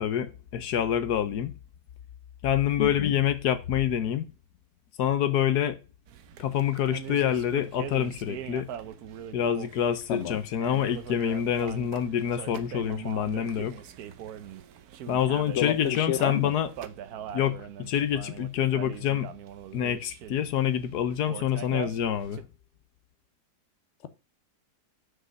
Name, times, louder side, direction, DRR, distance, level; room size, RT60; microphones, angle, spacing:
voice 1, 0.0-1.5 2.4-4.3 5.0-5.8 6.4-8.7 9.3-13.8 15.1-16.7 17.3-19.3 19.7-22.4, left 10 dB, 75° left, 1.3 m, -27 dB
voice 2, 2.8-3.2 10.1-10.4 15.6-16.5, left 8 dB, 55° left, 1.0 m, -29 dB
sound 1, 6.1-22.4, right 9 dB, 70° right, 1.2 m, -42 dB
6.4 x 5.1 x 6.3 m
omnidirectional pair, 1.8 m